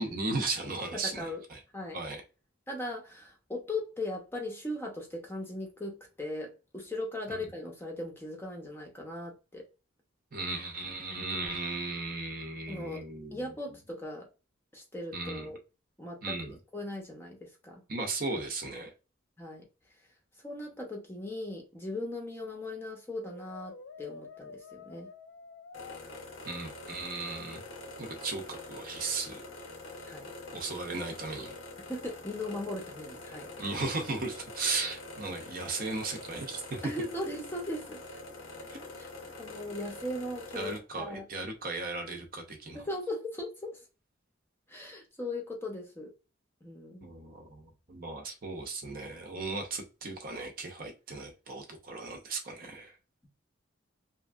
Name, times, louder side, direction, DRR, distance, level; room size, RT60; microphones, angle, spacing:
voice 1, 0.0-1.6 1.9-2.2 7.3-7.5 10.3-13.5 15.1-15.5 16.2-16.6 17.9-18.9 26.4-27.6 28.0-29.4 30.5-31.6 33.6-36.9 38.7-38.8 40.5-42.8 47.0-52.9, right 3 dB, 45° right, 0.6 m, -36 dB
voice 2, 0.9-1.4 1.7-2.0 2.7-9.6 12.7-14.3 14.7-15.6 16.0-17.8 19.4-19.7 20.4-25.1 30.0-30.3 31.9-33.5 36.8-38.0 39.0-39.1 39.4-41.3 42.7-43.8 44.7-46.1 46.6-47.1, left 1 dB, 10° left, 0.6 m, -38 dB
Brass instrument, 23.2-26.0 27.5-28.1, left 5 dB, 70° left, 0.4 m, -49 dB
sound 1, 25.7-40.8, left 2 dB, 90° left, 0.9 m, -45 dB
2.9 x 2.5 x 2.3 m
head